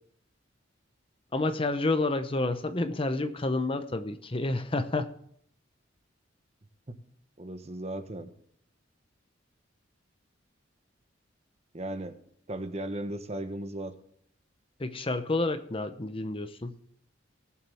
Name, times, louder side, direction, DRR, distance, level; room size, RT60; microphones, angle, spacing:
voice 1, 1.3-5.1 14.8-16.7, left 2 dB, 30° left, 9 dB, 0.8 m, -29 dB
voice 2, 7.4-8.3 11.7-12.2 12.5-13.9, right 1 dB, 35° right, 8 dB, 1.1 m, -36 dB
20.0 x 7.2 x 3.5 m, 0.66 s
head